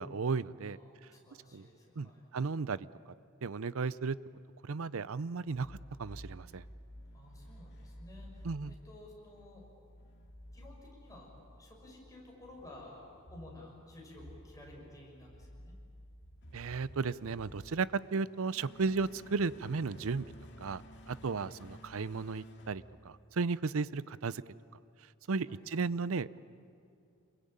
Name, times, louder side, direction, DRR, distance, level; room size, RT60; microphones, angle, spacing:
voice 1, 0.0-0.8 1.5-1.6 2.0-2.8 3.4-4.2 4.6-6.6 8.4-8.7 16.5-20.3 20.6-20.8 21.1-24.4 25.3-26.4, right 4 dB, 65° right, 18 dB, 0.6 m, -34 dB
voice 2, 0.7-2.3 7.1-9.7 10.5-11.3 11.6-15.8 21.2-21.6 25.5-25.8, left 1 dB, 15° left, -2 dB, 6.3 m, -54 dB
sound 1, 5.5-23.6, equal, 55° left, 2.1 m, -53 dB
28.0 x 22.0 x 8.9 m, 2.5 s
head